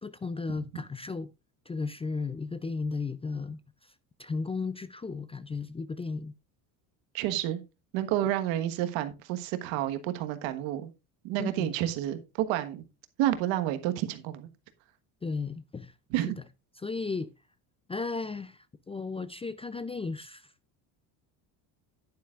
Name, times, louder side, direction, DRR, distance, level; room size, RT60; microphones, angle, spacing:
voice 1, 0.0-1.3 1.7-3.9 4.2-6.3 11.4-11.7 15.2-16.2 16.8-17.3 17.9-20.5, left 4 dB, 15° left, 0.4 m, -35 dB
voice 2, 7.1-7.6 7.9-10.9 11.2-12.8 13.2-14.5 16.1-16.4, right 13 dB, 80° right, 1.4 m, -30 dB
10.5 x 9.5 x 2.4 m
supercardioid pair, 95°, 45 cm